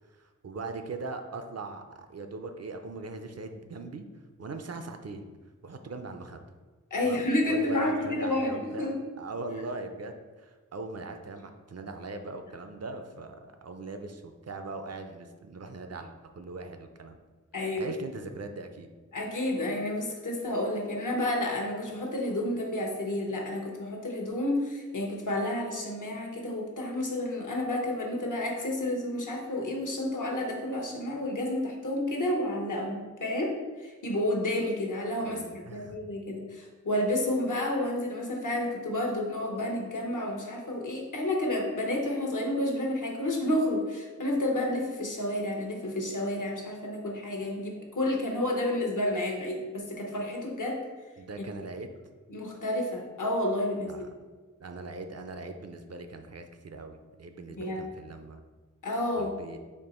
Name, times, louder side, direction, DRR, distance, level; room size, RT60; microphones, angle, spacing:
voice 1, 0.1-4.1 4.4-5.3 5.6-6.5 7.0-8.9 9.2-17.2 17.8-18.9 35.2-36.0 51.2-51.9 53.8-54.1 54.6-58.4 59.2-59.6, right 3 dB, 55° right, 6 dB, 0.5 m, -40 dB
voice 2, 6.9-9.0 17.5-17.9 19.1-50.8 51.4-51.5 52.3-53.9 57.6-57.8 58.8-59.3, left 1 dB, 75° left, 1 dB, 0.9 m, -30 dB
4.4 x 2.8 x 4.2 m, 1.3 s
wide cardioid pair, 60°, 31 cm